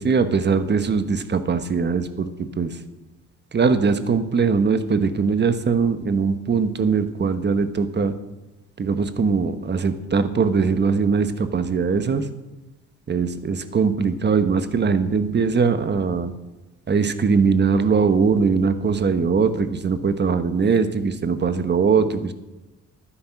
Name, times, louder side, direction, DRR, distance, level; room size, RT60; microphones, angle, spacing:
voice 1, 0.0-2.8 3.5-8.1 8.8-12.3 13.1-16.3 16.9-22.3, right 5 dB, 35° right, 10 dB, 1.2 m, -21 dB
11.5 x 10.0 x 5.9 m, 1.0 s
cardioid pair, 90°, 30 cm